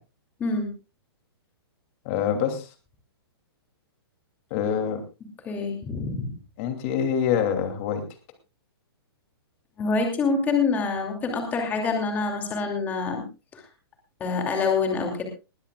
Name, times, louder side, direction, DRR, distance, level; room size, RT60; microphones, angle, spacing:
voice 1, 0.4-0.7 5.4-6.3 9.8-13.2 13.5-13.6 14.2-15.2, left 4 dB, 10° left, 3 dB, 2.6 m, -26 dB
voice 2, 2.0-2.7 4.5-5.0 6.6-8.0, left 8 dB, 30° left, 6 dB, 2.7 m, -25 dB
20.5 x 15.5 x 2.4 m, 0.29 s
hypercardioid pair, 170°, 13 cm